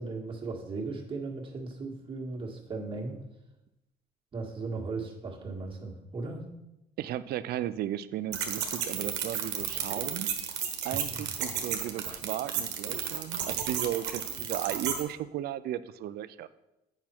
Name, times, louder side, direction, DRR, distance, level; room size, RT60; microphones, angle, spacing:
voice 1, 0.0-3.2 4.3-6.4 10.9-11.3, right 3 dB, 30° right, -1 dB, 1.7 m, -37 dB
voice 2, 7.0-10.3 10.8-16.5, right 12 dB, 70° right, 15 dB, 0.5 m, -35 dB
sound 1, 8.3-15.0, right 9 dB, 90° right, 1.1 m, -33 dB
8.3 x 5.8 x 4.4 m, 0.92 s
cardioid pair, 110°, 17 cm